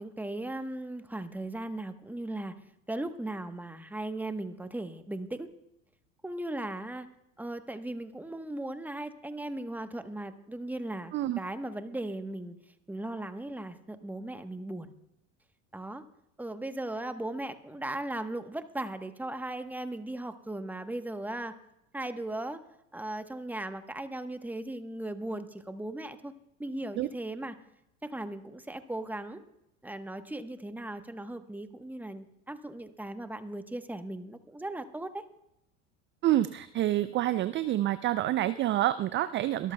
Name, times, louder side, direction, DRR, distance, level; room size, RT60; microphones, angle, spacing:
voice 1, 0.0-2.6 2.9-5.5 6.2-7.1 7.4-12.6 12.9-14.9 15.7-16.0 16.4-21.6 21.9-22.6 22.9-26.3 26.6-27.6 28.0-29.4 29.8-35.2, right 1 dB, 5° right, 9 dB, 1.0 m, -37 dB
voice 2, 36.2-39.7, right 14 dB, 30° right, 14 dB, 0.4 m, -27 dB
23.5 x 13.0 x 2.2 m, 0.84 s
hypercardioid pair, 80°, 40 cm